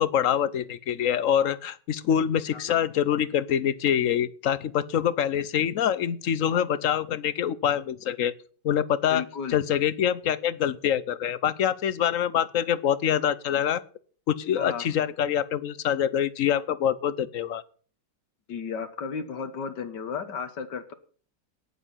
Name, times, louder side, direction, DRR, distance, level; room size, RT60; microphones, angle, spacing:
voice 1, 0.0-8.3 8.6-9.2 9.5-13.8 14.3-17.6, left 9 dB, 55° left, 17 dB, 1.0 m, -25 dB
voice 2, 9.1-9.6 14.6-14.9 18.5-20.9, left 6 dB, 75° left, 9 dB, 1.8 m, -34 dB
18.0 x 7.3 x 5.6 m, 0.43 s
omnidirectional pair, 1.9 m